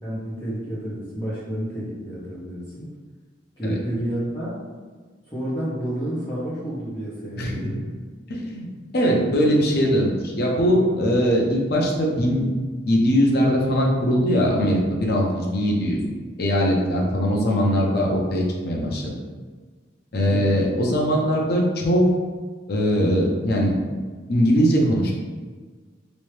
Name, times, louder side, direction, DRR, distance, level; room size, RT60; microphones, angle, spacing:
voice 1, 0.0-2.9 3.6-4.6 5.3-7.9 20.2-20.5, right 1 dB, 20° left, -14 dB, 0.9 m, -30 dB
voice 2, 7.4-7.7 8.3-8.7 8.9-12.5 12.9-16.0 16.4-19.1 20.1-22.1 22.7-23.7 24.3-25.1, equal, 55° left, -1 dB, 0.6 m, -21 dB
3.1 x 2.7 x 3.2 m, 1.5 s
head